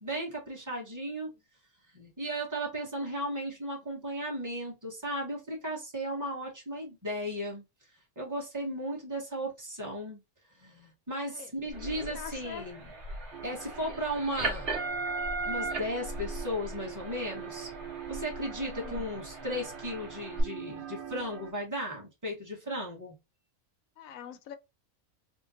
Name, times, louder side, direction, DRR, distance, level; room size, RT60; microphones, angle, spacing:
voice 1, 0.0-1.3 1.9-7.6 8.1-10.2 10.5-12.9 13.4-14.7 15.4-17.7 18.1-23.2, equal, 15° right, 1.3 m, -35 dB
sound 1, 11.7-20.4, right 2 dB, 45° right, 1.4 m, -38 dB
voice 2, 11.8-12.7 18.7-19.1 24.0-24.6, left 8 dB, 70° left, 0.9 m, -44 dB
sound 2, 13.3-21.5, right 9 dB, 75° right, 0.5 m, -44 dB
3.7 x 2.5 x 2.7 m
omnidirectional pair, 1.5 m